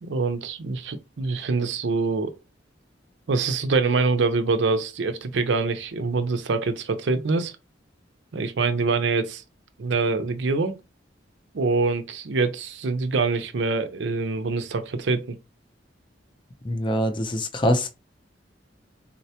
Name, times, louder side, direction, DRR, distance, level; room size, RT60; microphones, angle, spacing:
voice 1, 0.0-2.3 3.3-7.5 8.3-9.4 9.8-10.7 11.5-15.4, right 4 dB, 70° right, 0.5 m, -25 dB
voice 2, 16.6-17.9, equal, 25° left, 0.5 m, -24 dB
4.0 x 2.1 x 2.8 m
head